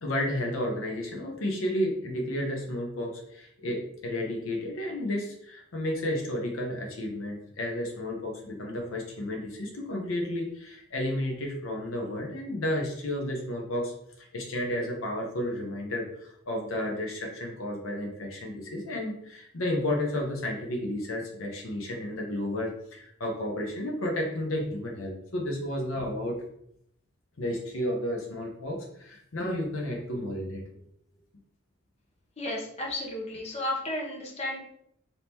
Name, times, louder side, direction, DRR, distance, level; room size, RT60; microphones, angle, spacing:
voice 1, 0.0-26.4 27.4-30.6, left 1 dB, 80° left, 0 dB, 0.7 m, -32 dB
voice 2, 32.4-34.6, left 1 dB, 30° left, -3 dB, 0.8 m, -33 dB
3.5 x 2.8 x 2.8 m, 0.72 s
head